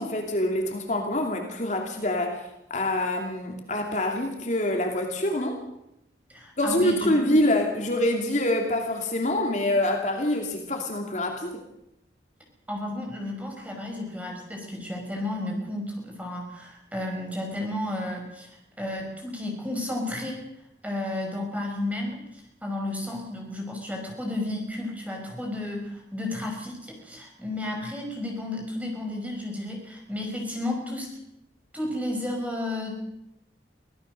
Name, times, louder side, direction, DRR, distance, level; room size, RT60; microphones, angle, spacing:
voice 1, 0.0-2.4 2.7-5.6 6.6-11.6, left 1 dB, 40° left, 2 dB, 2.7 m, -25 dB
voice 2, 6.3-7.4 12.7-18.5 18.8-20.4 20.8-31.1 31.7-33.1, left 1 dB, 10° right, 1 dB, 5.5 m, -32 dB
24.5 x 16.5 x 6.6 m, 0.84 s
head